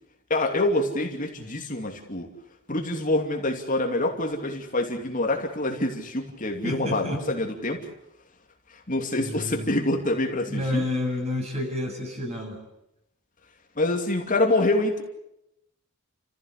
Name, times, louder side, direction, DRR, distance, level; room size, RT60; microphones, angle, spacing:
voice 1, 0.3-2.3 2.7-7.8 8.9-10.8 13.8-15.0, left 2 dB, 40° left, 2 dB, 2.8 m, -26 dB
voice 2, 6.6-7.2 9.2-9.7 10.4-12.6, left 1 dB, 30° right, 1 dB, 8.0 m, -30 dB
30.0 x 15.5 x 8.3 m, 0.82 s
head